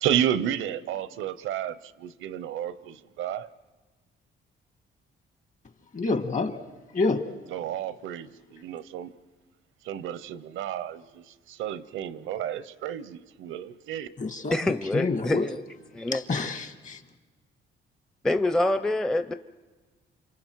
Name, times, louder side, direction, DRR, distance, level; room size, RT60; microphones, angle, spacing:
voice 1, 0.0-3.5 7.5-9.1 9.8-14.1, right 10 dB, 85° right, 0.8 m, -31 dB
voice 2, 5.9-6.6 6.9-7.2 14.2-14.5 14.9-15.5 16.1-17.0, left 3 dB, 40° left, 1.6 m, -27 dB
voice 3, 14.5-15.6 15.9-16.5 18.2-19.3, left 2 dB, 5° left, 0.6 m, -26 dB
29.0 x 26.5 x 4.6 m
cardioid pair, 90°, 20 cm